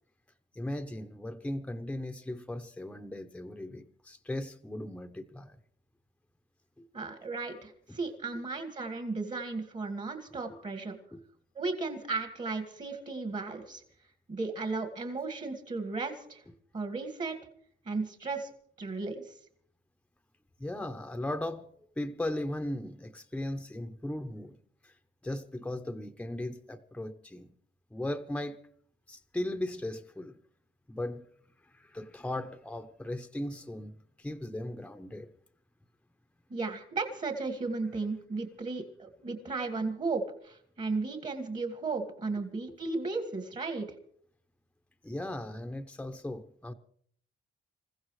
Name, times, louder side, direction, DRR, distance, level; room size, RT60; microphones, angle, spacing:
voice 1, 0.5-5.6 6.8-6.9 7.9-8.0 10.5-10.6 11.1-11.3 20.6-21.7 22.0-24.6 24.8-24.9 25.2-27.5 27.9-28.6 29.1-30.4 30.9-31.2 31.7-33.9 34.2-35.3 42.7-42.8 45.0-46.7, left 1 dB, 5° left, 0.9 m, -37 dB
voice 2, 6.9-11.0 11.6-13.8 14.3-16.4 16.7-17.3 17.9-18.5 18.8-19.3 36.5-43.9, right 3 dB, 40° right, 2.0 m, -35 dB
27.0 x 15.0 x 3.2 m
cardioid pair, 90°, 20 cm